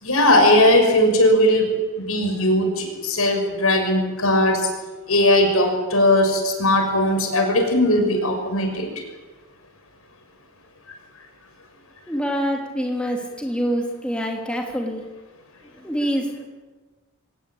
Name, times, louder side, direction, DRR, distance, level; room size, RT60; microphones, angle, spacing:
voice 1, 0.0-4.7 5.1-8.9, left 1 dB, 75° left, 4 dB, 6.3 m, -18 dB
voice 2, 12.1-15.0 15.6-16.4, equal, 5° left, 0 dB, 3.3 m, -26 dB
24.5 x 18.5 x 8.9 m, 1.2 s
head